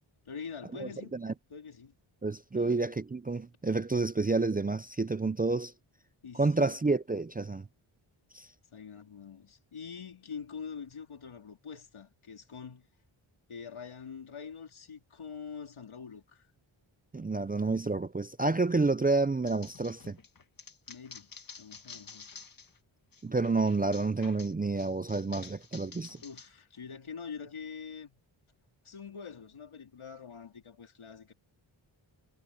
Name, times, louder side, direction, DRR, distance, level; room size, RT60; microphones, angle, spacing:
voice 1, 0.3-1.1 1.5-1.9 2.5-2.8 6.2-6.8 8.7-12.9 13.5-16.5 20.9-22.3 26.2-28.1 28.8-31.3, left 6 dB, 80° left, 4.0 m, -45 dB
voice 2, 0.8-1.3 2.2-5.7 6.3-7.7 8.3-8.5 17.1-20.2 23.2-26.2, right 3 dB, 20° right, 0.4 m, -29 dB
sound 1, 19.5-22.8 23.1-26.5, left 5 dB, 45° left, 1.8 m, -50 dB
wide cardioid pair, 140°, 49 cm